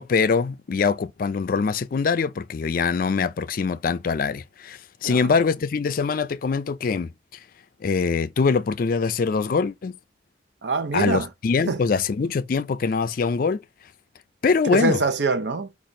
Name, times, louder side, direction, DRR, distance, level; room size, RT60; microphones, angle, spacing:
voice 1, 0.0-7.1 7.8-10.0 10.9-13.6 14.4-15.0, left 5 dB, 50° left, 0.4 m, -23 dB
voice 2, 10.6-11.3 11.7-11.8 14.6-15.7, right 3 dB, 70° right, 0.7 m, -24 dB
4.9 x 2.5 x 4.1 m
head